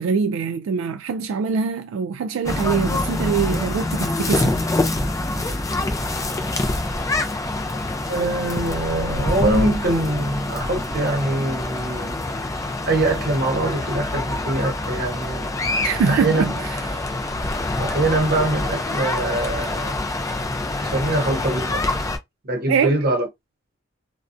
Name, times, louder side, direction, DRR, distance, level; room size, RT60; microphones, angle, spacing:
voice 1, 0.0-4.6 15.8-17.0 22.7-23.1, right 6 dB, 85° right, 0.3 m, -23 dB
sound 1, 2.4-22.2, left 2 dB, 15° left, 0.3 m, -25 dB
voice 2, 8.1-12.2 12.9-15.6 16.1-16.5 17.8-19.9 20.8-21.8 22.4-23.3, right 2 dB, 50° right, 0.8 m, -23 dB
2.4 x 2.0 x 2.5 m
head